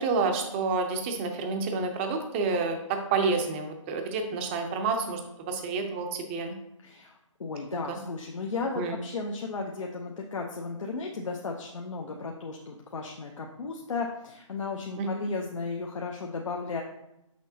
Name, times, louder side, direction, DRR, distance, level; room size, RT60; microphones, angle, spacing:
voice 1, 0.0-5.2 5.5-6.5 7.9-8.0 8.8-9.0 15.0-15.1, right 4 dB, 20° right, 4 dB, 0.6 m, -29 dB
voice 2, 6.8-7.1 7.4-16.8, left 4 dB, 70° left, 0 dB, 0.8 m, -34 dB
6.2 x 6.0 x 2.8 m, 0.86 s
hypercardioid pair, 150°, 17 cm